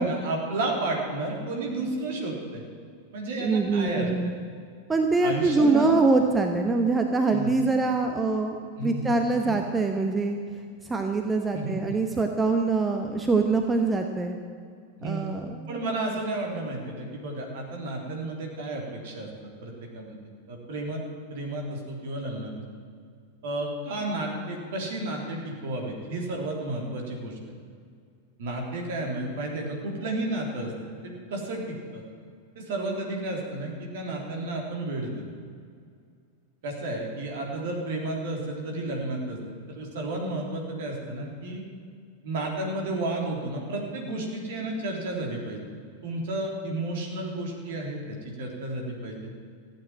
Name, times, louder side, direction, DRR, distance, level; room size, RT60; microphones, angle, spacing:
voice 1, 0.0-2.6 3.1-4.3 5.2-6.0 7.3-7.5 8.8-9.1 9.4-9.5 11.5-11.8 15.0-15.3 15.7-19.3 19.6-20.2 20.5-21.0 21.3-22.5 23.4-27.4 28.4-32.0 32.6-35.1 36.6-39.4 39.7-41.6 42.2-45.6 46.0-49.3, right 2 dB, 55° right, 0 dB, 3.5 m, -32 dB
voice 2, 3.4-4.3 4.9-8.6 8.8-10.4 10.8-14.3 15.0-15.6, right 3 dB, 15° right, 5 dB, 1.0 m, -24 dB
15.0 x 9.0 x 9.2 m, 2.2 s
figure-of-eight pair, 90°, 0 cm